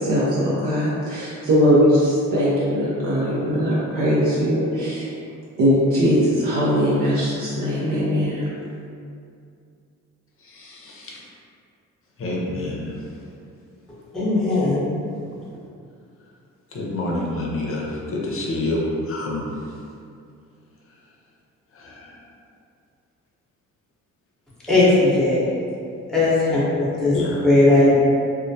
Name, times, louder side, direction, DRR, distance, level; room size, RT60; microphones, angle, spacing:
voice 1, 0.0-5.1 5.6-8.5, equal, 65° right, -8 dB, 0.7 m, -20 dB
voice 2, 10.5-11.2 12.2-12.9 16.7-18.8 19.1-19.4 21.8-22.1 27.1-27.4, left 2 dB, 45° left, -3 dB, 0.6 m, -28 dB
voice 3, 14.1-14.9 24.7-25.4 26.1-27.2 27.4-27.9, left 2 dB, ahead, -9 dB, 0.9 m, -17 dB
2.2 x 2.0 x 2.7 m, 2.4 s
supercardioid pair, 60°, 33 cm